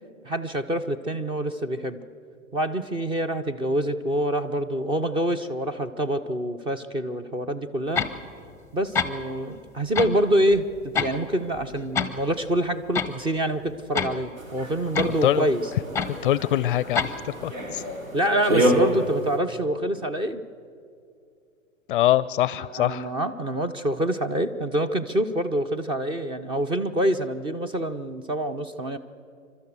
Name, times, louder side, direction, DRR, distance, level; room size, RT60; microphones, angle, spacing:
voice 1, 0.3-2.0 2.5-8.1 8.7-15.6 18.1-20.4 22.8-29.0, right 1 dB, 15° right, 8 dB, 0.6 m, -26 dB
sound 1, 7.9-8.2 8.7-8.8 8.9-9.1 9.9-10.2 10.5-11.2 11.5-12.1 12.5-12.6 12.9-13.1 13.9-14.2 14.9-15.2 15.9-16.1 16.9-17.1, left 6 dB, 5° left, 1.0 m, -26 dB
sound 2, 14.4-19.4, right 1 dB, 80° right, 4.2 m, -28 dB
voice 2, 15.0-15.5 16.1-17.1 17.4-17.8 21.9-23.1, left 13 dB, 40° left, 18 dB, 0.5 m, -24 dB
29.0 x 12.5 x 8.0 m, 2.4 s
figure-of-eight pair, 110°, 40 cm